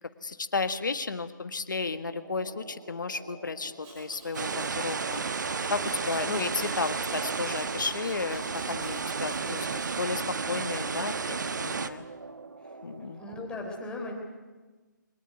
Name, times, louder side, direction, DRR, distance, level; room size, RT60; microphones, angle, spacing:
voice 1, 0.2-5.2 5.7-12.0 12.8-13.2, left 4 dB, 70° left, 10 dB, 1.6 m, -33 dB
sound 1, 2.1-13.6, right 3 dB, 80° right, 1.6 m, -48 dB
Domestic sounds home sounds, 3.8-10.0, right 2 dB, 20° right, 5.6 m, -50 dB
sound 2, 4.3-11.9, right 5 dB, 65° right, 1.2 m, -32 dB
voice 2, 13.2-14.1, left 2 dB, 10° left, 1 dB, 3.7 m, -37 dB
23.0 x 19.5 x 9.5 m, 1.3 s
figure-of-eight pair, 145°, 11 cm